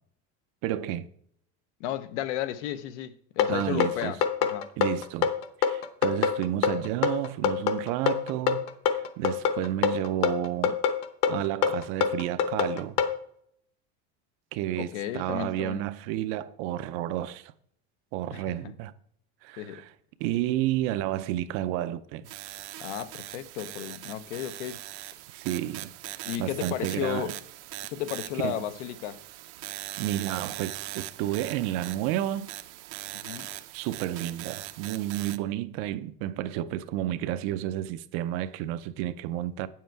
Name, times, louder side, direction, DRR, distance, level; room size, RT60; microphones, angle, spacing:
voice 1, 0.6-1.1 3.5-4.2 4.8-10.8 11.3-13.0 14.5-17.5 18.1-18.9 19.4-19.9 20.2-22.2 25.3-27.4 28.4-28.6 29.7-32.5 33.7-39.7, right 13 dB, 40° right, 0.4 m, -31 dB
voice 2, 1.8-4.7 14.8-15.9 18.3-18.4 19.6-19.8 22.8-24.8 26.2-27.3 27.9-29.2 33.1-33.5, left 11 dB, 85° left, 0.9 m, -33 dB
sound 1, 3.4-13.2, left 7 dB, 45° left, 1.0 m, -25 dB
sound 2, 22.3-35.4, right 17 dB, 70° right, 0.7 m, -41 dB
9.2 x 7.5 x 4.6 m
cardioid pair, 175°, 35 cm